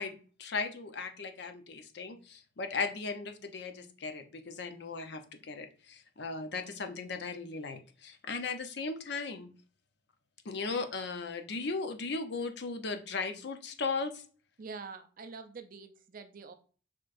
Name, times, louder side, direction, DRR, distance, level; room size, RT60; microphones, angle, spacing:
voice 1, 0.0-9.5 10.4-14.2, left 4 dB, 65° left, 7 dB, 0.7 m, -37 dB
voice 2, 14.6-16.5, right 4 dB, 50° right, 8 dB, 0.5 m, -45 dB
6.4 x 3.0 x 2.5 m, 0.39 s
head